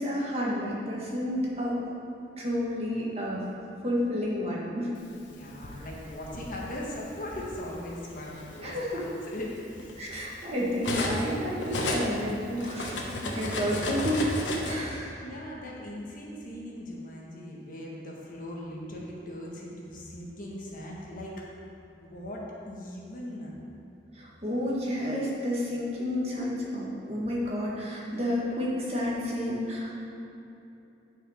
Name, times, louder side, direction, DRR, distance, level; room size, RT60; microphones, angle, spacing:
voice 1, 0.0-1.8 2.4-3.4 3.8-4.9 5.7-5.9 8.6-9.0 10.0-14.2 14.6-15.2 24.1-29.9, equal, 35° right, -5 dB, 1.7 m, -30 dB
Cutlery silverware, 5.2-6.5 7.5-7.7 8.1-11.3 11.6-14.7, left 2 dB, 90° left, 1.1 m, -33 dB
voice 2, 5.3-9.0 9.3-10.0 14.4-14.9 15.2-21.4 22.0-23.5, left 1 dB, 50° left, -3 dB, 1.5 m, -39 dB
9.2 x 6.3 x 5.0 m, 2.8 s
head